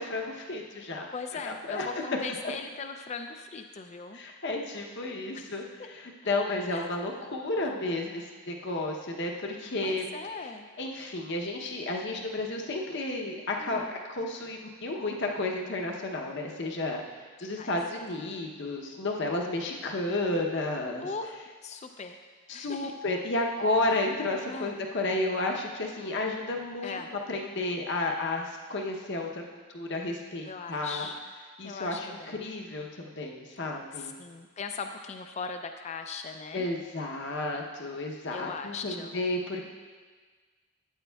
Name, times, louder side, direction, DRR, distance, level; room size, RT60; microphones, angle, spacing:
voice 1, 0.0-1.1 1.4-1.9 2.4-2.5 4.1-10.1 10.8-21.1 22.5-29.4 29.7-31.1 31.6-34.1 36.5-39.6, left 2 dB, 50° left, 1 dB, 0.8 m, -32 dB
voice 2, 1.1-4.2 5.3-5.5 5.8-5.9 6.7-6.9 9.8-10.7 13.6-13.9 17.4-17.7 21.0-21.4 21.6-22.2 22.5-22.9 23.9-24.0 24.5-24.8 26.8-27.1 30.4-31.2 31.6-32.4 33.9-36.7 38.3-39.2, left 4 dB, 30° left, 6 dB, 0.3 m, -39 dB
12.5 x 8.6 x 2.3 m, 1.4 s
head